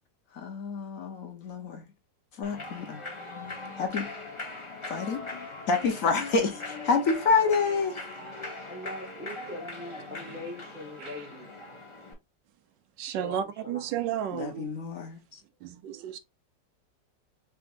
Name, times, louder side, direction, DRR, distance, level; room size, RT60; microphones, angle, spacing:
voice 1, 0.3-1.9 2.3-3.1 3.8-4.1 4.9-5.2 5.7-8.1 14.3-15.4, left 4 dB, 55° left, 1.2 m, -28 dB
Human voice / Clapping / Cheering, 2.4-12.1, left 2 dB, 20° left, 1.0 m, -40 dB
sound 1, 2.5-8.5, left 9 dB, 85° left, 1.4 m, -49 dB
voice 2, 8.7-11.5 13.1-13.9, left 1 dB, 5° right, 1.1 m, -41 dB
voice 3, 13.0-14.7 15.6-16.2, right 10 dB, 85° right, 1.3 m, -33 dB
5.1 x 3.4 x 2.6 m
omnidirectional pair, 1.9 m